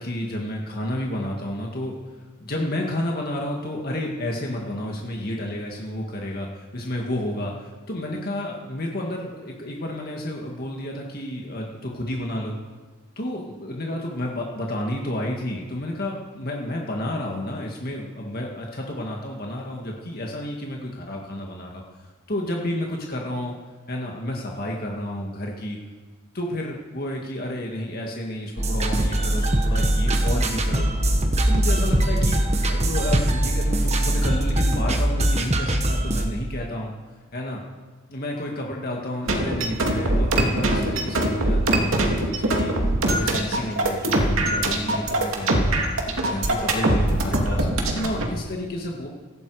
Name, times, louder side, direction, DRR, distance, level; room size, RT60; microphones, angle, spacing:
voice 1, 0.0-2.0 2.4-12.5 13.2-23.5 23.9-25.8 26.3-30.9 31.4-36.9 37.3-37.6 38.1-42.7 43.1-45.8 46.2-49.1, left 1 dB, 45° left, -1 dB, 1.9 m, -31 dB
sound 1, 28.6-36.3, right 1 dB, 30° right, 1.5 m, -21 dB
sound 2, 39.2-48.2, right 1 dB, 70° right, 2.5 m, -22 dB
17.5 x 16.5 x 4.9 m, 1.3 s
head